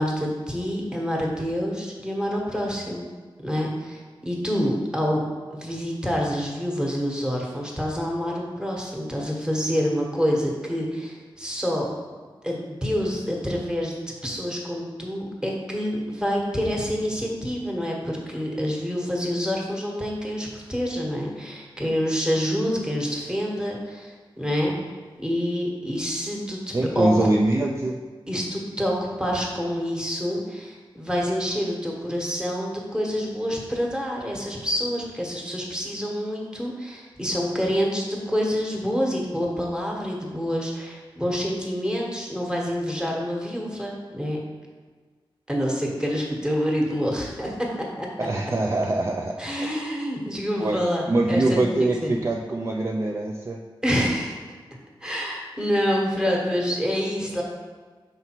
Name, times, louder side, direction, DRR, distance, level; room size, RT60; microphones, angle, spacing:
voice 1, 0.0-3.1 3.4-5.3 5.5-11.9 12.4-13.9 14.2-24.7 25.2-26.6 26.9-27.1 28.3-44.4 45.5-48.1 49.4-52.1 53.8-54.6 55.0-57.4, equal, 10° right, -2 dB, 1.1 m, -27 dB
voice 2, 26.7-28.0 48.2-49.3 49.6-49.8 50.6-53.6, right 2 dB, 35° right, 0 dB, 0.4 m, -24 dB
5.4 x 3.9 x 4.4 m, 1.5 s
wide cardioid pair, 110°, 9 cm